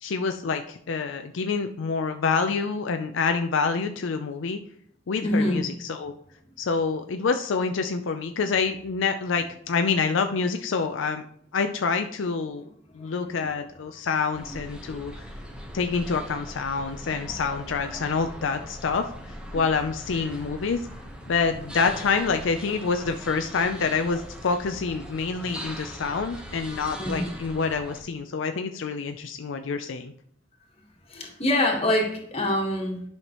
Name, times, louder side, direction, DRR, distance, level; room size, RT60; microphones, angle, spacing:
voice 1, 0.0-4.6 5.1-6.1 6.6-11.3 11.5-12.6 12.9-15.2 15.7-19.1 19.5-20.9 21.3-30.1, left 5 dB, 75° left, 6 dB, 0.5 m, -27 dB
voice 2, 5.2-5.6 13.0-13.1 13.4-13.5 27.0-27.3 31.1-33.0, left 1 dB, 30° left, 1 dB, 1.6 m, -25 dB
sound 1, 14.3-28.0, equal, 5° right, 1.0 m, -40 dB
11.0 x 5.7 x 3.0 m, 0.65 s
head